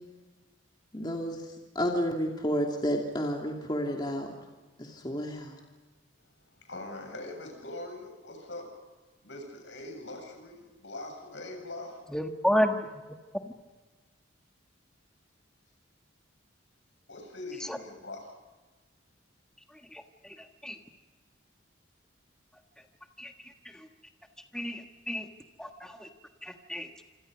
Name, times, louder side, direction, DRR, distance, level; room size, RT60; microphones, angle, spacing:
voice 1, 0.9-1.4 1.7-4.3 4.8-5.6, equal, 25° left, 0 dB, 2.7 m, -31 dB
voice 2, 6.5-8.7 9.2-12.0 17.1-18.3, left 2 dB, 65° left, 3 dB, 7.4 m, -42 dB
voice 3, 12.1-12.7 17.7-17.8 20.6-20.8 23.2-23.3 24.5-25.2 25.6-25.7 26.0-26.1 26.4-27.0, equal, 5° left, 4 dB, 1.5 m, -29 dB
27.0 x 26.5 x 5.3 m, 1.2 s
head